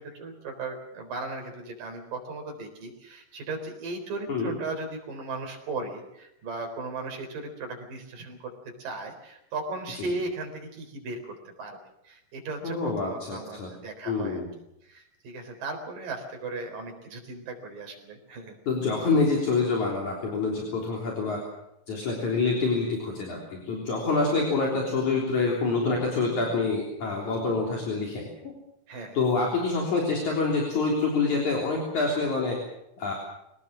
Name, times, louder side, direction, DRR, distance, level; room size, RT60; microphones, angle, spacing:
voice 1, 0.0-8.5 8.8-11.8 12.1-14.4 14.8-18.6 28.9-29.2, right 3 dB, 70° right, 3 dB, 5.7 m, -37 dB
voice 2, 12.6-13.7 14.1-14.5 18.7-21.4 21.9-28.5 29.1-32.6 33.0-33.1, left 3 dB, 55° left, -1 dB, 4.9 m, -26 dB
24.0 x 18.5 x 7.5 m, 0.83 s
omnidirectional pair, 4.0 m